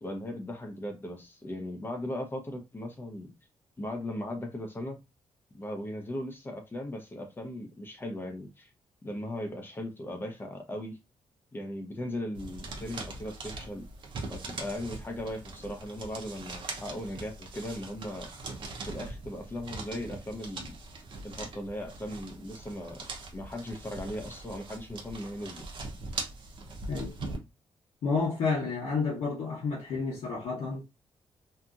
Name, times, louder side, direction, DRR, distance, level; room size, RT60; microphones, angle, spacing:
voice 1, 0.0-3.3 3.8-5.0 5.5-8.7 9.0-11.0 11.5-13.9 14.3-18.3 18.9-20.8 21.2-25.6, left 1 dB, 20° left, 0.6 m, -38 dB
sound 1, 12.3-27.4, right 3 dB, 55° right, 0.7 m, -41 dB
voice 2, 28.0-30.8, left 4 dB, 90° left, 0.9 m, -30 dB
2.7 x 2.6 x 2.3 m
cardioid pair, 130°, 10 cm